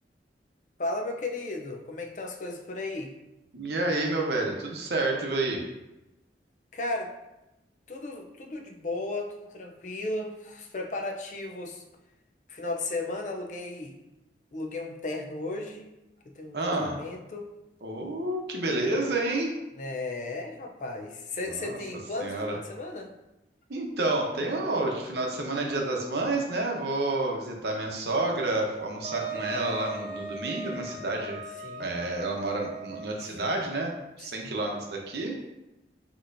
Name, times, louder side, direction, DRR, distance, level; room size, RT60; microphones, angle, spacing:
voice 1, 0.8-3.1 6.7-7.1 7.9-11.8 12.5-14.0 14.5-15.9 16.3-17.5 19.8-23.1 31.6-31.9 33.2-33.3 34.2-34.6, left 2 dB, 45° left, 2 dB, 0.5 m, -35 dB
voice 2, 3.5-5.7 16.5-17.0 17.8-19.6 21.5-21.8 22.2-22.6 23.7-31.4 31.8-35.3, right 2 dB, 70° right, 0 dB, 0.8 m, -29 dB
Wind instrument woodwind instrument, 29.0-33.4, right 2 dB, 30° right, 0.6 m, -39 dB
6.4 x 3.0 x 2.6 m, 0.96 s
head